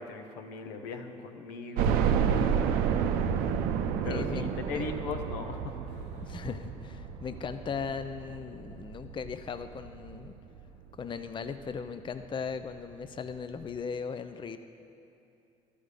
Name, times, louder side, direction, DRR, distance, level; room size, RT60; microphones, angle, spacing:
voice 1, 0.0-2.5 4.0-6.2, left 4 dB, 75° left, 6 dB, 0.7 m, -39 dB
sound 1, 1.8-10.7 11.2-11.3 11.6-11.7 12.9-13.0 13.3-13.4, right 7 dB, 70° right, 0.5 m, -30 dB
voice 2, 4.0-4.5 4.7-4.8 6.2-10.3 11.0-14.6, left 6 dB, 30° left, 10 dB, 0.5 m, -38 dB
12.0 x 5.0 x 6.6 m, 2.6 s
hypercardioid pair, 55°, 16 cm